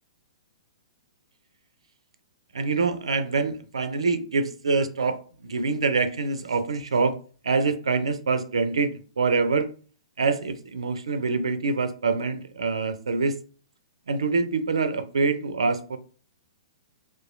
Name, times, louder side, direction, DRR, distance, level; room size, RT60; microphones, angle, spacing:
voice 1, 2.5-7.2 7.4-9.7 10.2-13.4 14.1-16.0, right 4 dB, 65° right, 0.4 m, -25 dB
2.9 x 2.4 x 2.4 m
figure-of-eight pair, 110°, 3 cm